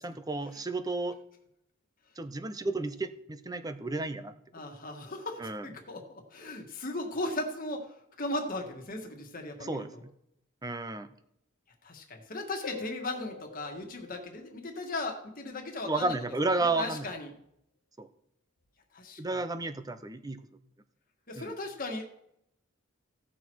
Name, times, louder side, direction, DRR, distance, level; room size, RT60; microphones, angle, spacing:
voice 1, 0.0-1.2 2.2-4.3 5.4-5.7 9.6-10.1 10.6-11.1 15.9-17.1 18.0-18.1 19.2-20.4 21.4-21.5, right 3 dB, 20° right, 10 dB, 0.7 m, -32 dB
voice 2, 4.5-10.0 11.8-16.1 16.6-17.3 18.9-19.2 21.3-22.1, left 2 dB, 45° left, 3 dB, 1.7 m, -37 dB
Harp, 12.6-15.1 18.6-18.7, left 6 dB, 80° left, 1.1 m, -45 dB
16.0 x 6.2 x 4.6 m, 0.76 s
head